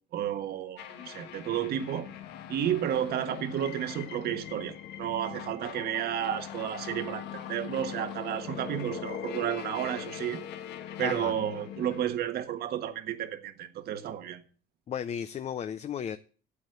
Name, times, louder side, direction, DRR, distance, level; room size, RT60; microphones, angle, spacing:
voice 1, 0.1-2.1 2.5-10.4 11.0-14.4, right 10 dB, 70° right, 1.5 m, -32 dB
sound 1, 0.8-12.0, left 10 dB, 85° left, 1.4 m, -41 dB
voice 2, 11.0-11.3 14.9-16.2, left 8 dB, 40° left, 0.6 m, -34 dB
8.4 x 8.2 x 8.1 m
cardioid pair, 110°, 17 cm